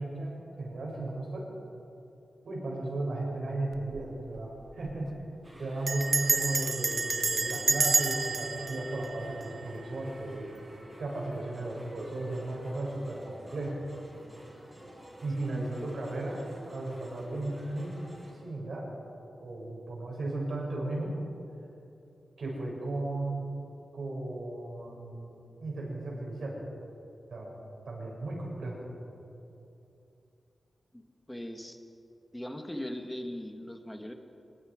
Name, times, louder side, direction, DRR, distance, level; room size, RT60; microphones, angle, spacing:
voice 1, 0.0-1.5 2.4-5.1 5.6-10.5 11.0-13.8 15.2-16.4 16.7-17.9 18.4-18.9 19.2-21.1 22.4-23.5 23.9-25.3 25.6-26.6 27.3-27.6 27.8-28.8, right 2 dB, 60° right, -3 dB, 6.5 m, -35 dB
Bell, 3.7-4.1 4.4-4.5 4.7-5.1 5.9-10.0, right 3 dB, 35° right, 0.8 m, -29 dB
sound 1, 5.4-18.3, right 1 dB, 15° right, 5.0 m, -49 dB
voice 2, 15.4-15.9 30.9-31.0 31.3-31.8 32.3-34.1, left 1 dB, 5° left, 4 dB, 1.5 m, -39 dB
25.0 x 20.5 x 5.0 m, 2.8 s
wide cardioid pair, 180°, 0 cm